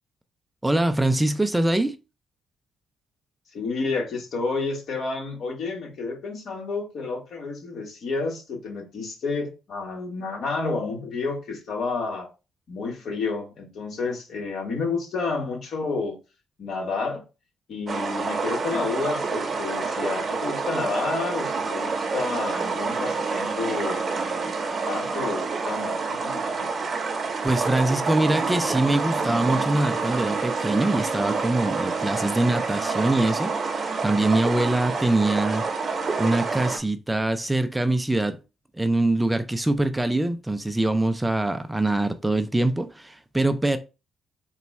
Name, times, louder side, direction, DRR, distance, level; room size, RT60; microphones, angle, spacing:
voice 1, 0.6-2.0 27.4-35.6 36.2-38.4 38.7-43.8, right 2 dB, 10° right, 0.4 m, -23 dB
voice 2, 3.5-12.3 12.7-16.2 16.6-17.2 17.7-26.7, left 4 dB, 65° left, 1.5 m, -30 dB
sound 1, 17.9-36.8, right 4 dB, 40° right, 0.7 m, -28 dB
4.1 x 2.3 x 4.1 m
cardioid pair, 90°, 0 cm